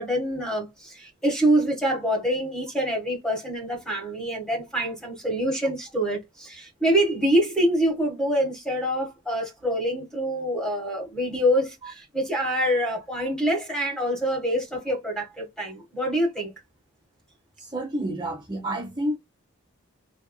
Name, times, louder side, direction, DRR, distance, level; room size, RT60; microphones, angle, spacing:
voice 1, 0.0-16.5, equal, 5° left, 1.4 m, -25 dB
voice 2, 17.6-19.2, right 1 dB, 20° right, 0.8 m, -29 dB
3.6 x 3.5 x 2.2 m
head